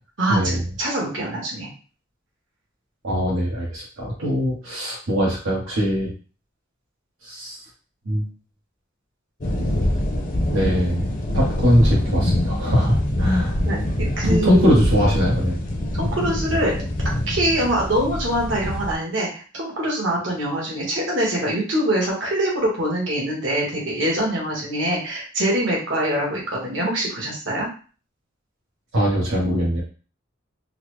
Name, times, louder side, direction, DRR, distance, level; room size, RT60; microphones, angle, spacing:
voice 1, 0.2-1.7 13.6-14.7 15.9-16.7 17.3-27.7, right 1 dB, 70° right, -3 dB, 1.3 m, -24 dB
voice 2, 3.0-6.1 7.2-7.6 8.1-8.3 10.5-13.6 14.3-15.6 28.9-29.8, equal, 90° right, -5 dB, 1.0 m, -21 dB
sound 1, 9.4-18.9, left 1 dB, 45° left, 0.6 m, -24 dB
3.8 x 2.1 x 3.1 m, 0.37 s
head